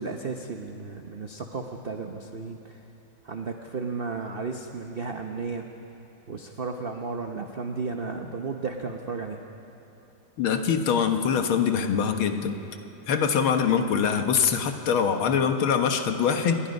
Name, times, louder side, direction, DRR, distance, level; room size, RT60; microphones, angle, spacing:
voice 1, 0.0-2.8 3.2-5.6 6.3-9.4, right 4 dB, 55° right, 4 dB, 0.6 m, -34 dB
voice 2, 10.4-12.6 13.1-16.6, left 7 dB, 70° left, 6 dB, 2.0 m, -23 dB
28.5 x 20.5 x 5.3 m, 3.0 s
omnidirectional pair, 2.4 m